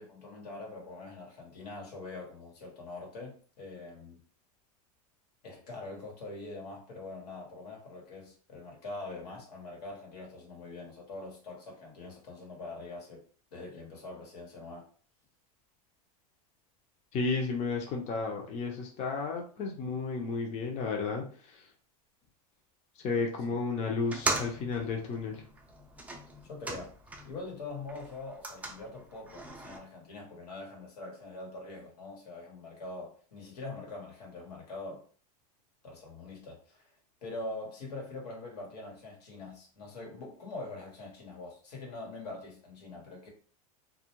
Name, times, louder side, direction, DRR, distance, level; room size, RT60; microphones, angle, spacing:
voice 1, 0.0-4.2 5.4-13.2 13.5-14.8 26.4-26.9 27.2-35.0 35.8-36.9 37.2-43.3, left 2 dB, 90° left, 1.2 m, -43 dB
voice 2, 17.1-21.7 23.0-25.4, left 4 dB, 35° left, 0.6 m, -33 dB
sound 1, 24.0-27.5 27.8-29.8, right 2 dB, 5° right, 0.4 m, -38 dB
2.3 x 2.1 x 2.9 m
supercardioid pair, 125°, 20 cm